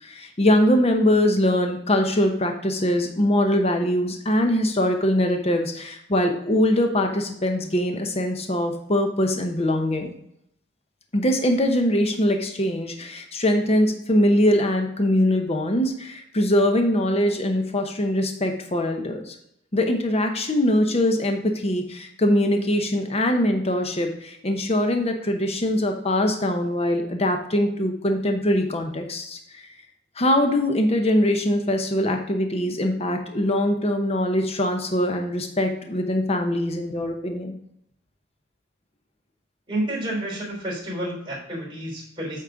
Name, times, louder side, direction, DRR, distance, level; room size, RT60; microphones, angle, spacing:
voice 1, 0.0-10.1 11.1-19.3 19.7-29.6 30.2-37.6, left 1 dB, 35° left, 4 dB, 0.9 m, -22 dB
voice 2, 39.7-42.4, right 1 dB, 25° right, -5 dB, 3.5 m, -30 dB
8.4 x 4.3 x 5.1 m, 0.72 s
head